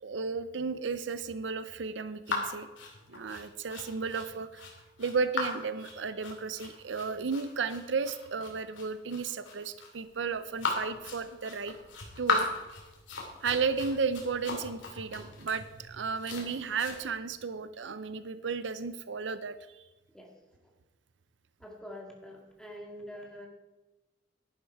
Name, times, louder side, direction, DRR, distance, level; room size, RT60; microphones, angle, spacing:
voice 1, 0.0-2.7 3.1-4.7 5.0-11.7 12.2-12.5 13.4-19.9, right 5 dB, 75° right, 12 dB, 0.6 m, -34 dB
sound 1, 2.3-17.0, left 3 dB, 85° left, 2.7 m, -37 dB
voice 2, 21.6-23.5, equal, 5° left, 0 dB, 2.0 m, -45 dB
11.0 x 11.0 x 4.7 m, 1.1 s
head